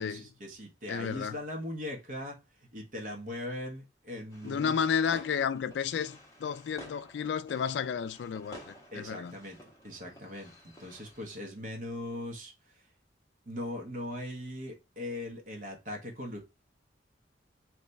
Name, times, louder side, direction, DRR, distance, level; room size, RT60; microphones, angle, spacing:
voice 1, 0.0-2.4 2.7-4.7 8.9-9.6 9.8-12.5 13.5-16.4, left 1 dB, 45° right, 1.3 m, -40 dB
voice 2, 0.9-1.4 4.4-9.4, left 7 dB, 70° left, 0.3 m, -32 dB
sound 1, 4.3-11.5, equal, 20° left, 1.1 m, -52 dB
3.3 x 3.2 x 4.0 m
head